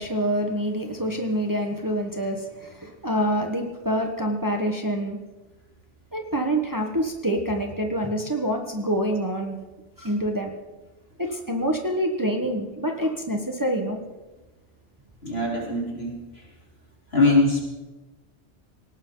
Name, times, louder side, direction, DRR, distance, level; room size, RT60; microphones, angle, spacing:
voice 1, 0.0-5.2 6.1-9.6 10.0-10.5 11.2-14.0, equal, 15° right, 2 dB, 1.5 m, -26 dB
voice 2, 15.2-16.1 17.1-17.6, left 2 dB, 60° left, -3 dB, 4.4 m, -21 dB
19.0 x 18.0 x 4.0 m, 1.1 s
omnidirectional pair, 1.2 m